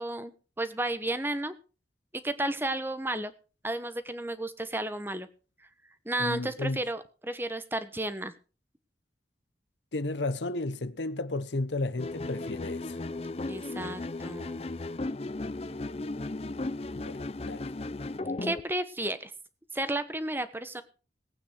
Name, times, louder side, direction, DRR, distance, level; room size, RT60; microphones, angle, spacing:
voice 1, 0.0-1.5 2.2-3.3 3.6-5.3 6.0-8.3 13.5-14.6 18.4-19.3 19.7-20.8, right 1 dB, 10° right, 1.1 m, -33 dB
voice 2, 6.2-6.8 9.9-13.0 16.9-17.7, left 2 dB, 85° left, 0.9 m, -33 dB
sound 1, 12.0-18.6, left 2 dB, 35° left, 0.6 m, -35 dB
19.0 x 8.8 x 5.0 m
head